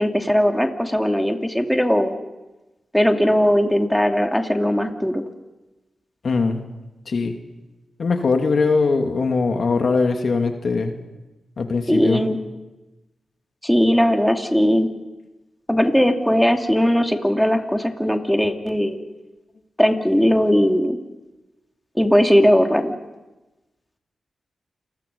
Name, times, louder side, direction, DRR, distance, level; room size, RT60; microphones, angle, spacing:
voice 1, 0.0-2.2 2.9-5.2 11.9-12.4 13.6-14.9 15.7-19.0 19.8-21.0 22.0-22.9, equal, 5° left, 4 dB, 2.5 m, -18 dB
voice 2, 6.2-6.6 7.1-7.4 8.0-10.9 11.6-12.2, left 4 dB, 65° left, 4 dB, 2.5 m, -21 dB
29.0 x 21.0 x 5.4 m, 1.1 s
supercardioid pair, 40°, 0 cm